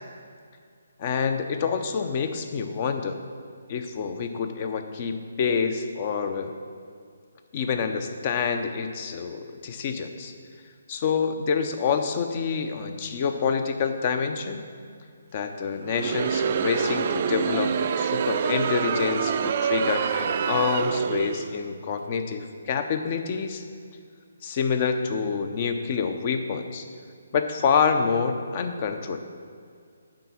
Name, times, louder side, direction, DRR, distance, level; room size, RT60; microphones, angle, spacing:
voice 1, 1.0-3.2 3.7-6.5 7.5-10.3 10.9-14.6 15.3-23.6 24.4-26.9 27.3-29.2, left 6 dB, 40° left, 7 dB, 0.6 m, -27 dB
Crowd, 15.8-21.6, right 7 dB, 45° right, 0.4 m, -26 dB
7.7 x 4.7 x 6.0 m, 2.2 s
figure-of-eight pair, 145°, 0 cm